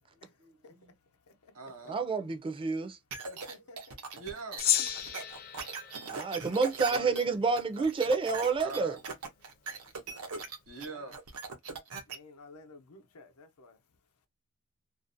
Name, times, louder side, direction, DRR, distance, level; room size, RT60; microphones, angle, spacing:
voice 1, 0.4-0.9 1.5-1.9 3.3-3.8 4.2-4.7 5.8-6.2 6.8-7.2 8.6-9.0 9.6-9.7 10.1-11.1, right 4 dB, 70° right, 1.0 m, -45 dB
voice 2, 1.9-3.0 6.1-9.0, right 4 dB, 25° right, 0.4 m, -29 dB
sound 1, 3.1-12.2, right 4 dB, 85° right, 0.7 m, -40 dB
voice 3, 3.3-4.2 10.7-11.2 12.1-13.8, left 3 dB, 90° left, 0.7 m, -54 dB
Gong, 4.6-7.2, left 10 dB, 45° left, 0.4 m, -33 dB
2.5 x 2.0 x 2.5 m
head